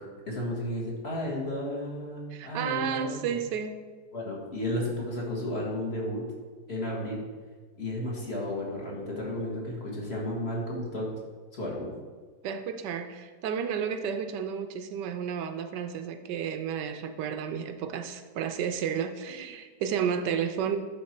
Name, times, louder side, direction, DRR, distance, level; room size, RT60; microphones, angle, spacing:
voice 1, 0.0-3.2 4.1-6.2 6.7-7.2 7.8-11.1 11.5-11.9, left 1 dB, 40° left, -3 dB, 1.7 m, -33 dB
voice 2, 2.3-3.8 12.4-20.8, right 7 dB, 90° right, 7 dB, 1.3 m, -32 dB
11.0 x 3.7 x 4.4 m, 1.5 s
omnidirectional pair, 1.8 m